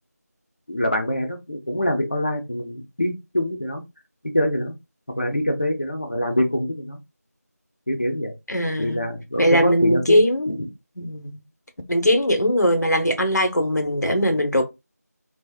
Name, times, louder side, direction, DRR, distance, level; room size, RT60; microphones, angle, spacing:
voice 1, 0.7-3.8 4.2-4.7 5.2-7.0 7.9-8.3 8.8-10.2 10.5-10.7, equal, 40° left, 0.6 m, -24 dB
voice 2, 8.5-9.1 9.4-10.6 11.0-11.4 11.9-14.6, equal, 90° left, 0.9 m, -20 dB
3.4 x 2.0 x 2.2 m
figure-of-eight pair, 175°, 9 cm